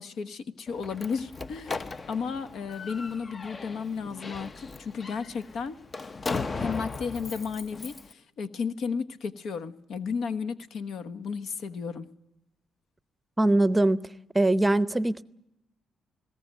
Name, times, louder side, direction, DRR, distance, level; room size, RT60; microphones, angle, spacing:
voice 1, 0.0-5.7 6.5-12.1, left 5 dB, 70° left, 11 dB, 1.2 m, -33 dB
Slam, 0.7-8.1, left 4 dB, 30° left, 0.8 m, -37 dB
voice 2, 13.4-14.0 14.3-15.2, right 2 dB, 15° right, 16 dB, 0.7 m, -22 dB
20.0 x 17.0 x 9.1 m, 0.88 s
cardioid pair, 90°, 0 cm